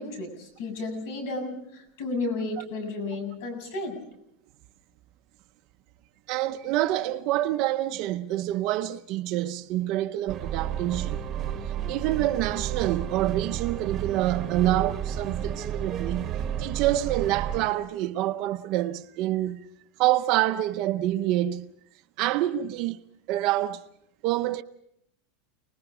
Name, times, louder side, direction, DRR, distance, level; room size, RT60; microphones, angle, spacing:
voice 1, 0.0-4.0, left 2 dB, 65° left, 7.1 m, -33 dB
voice 2, 6.3-11.2 11.9-19.7 20.0-21.7 22.2-23.0 23.3-23.8 24.2-24.6, right 14 dB, 40° right, 0.8 m, -27 dB
sound 1, 10.3-17.7, right 9 dB, 20° right, 1.3 m, -32 dB
29.5 x 20.5 x 5.0 m
supercardioid pair, 180°, 0 cm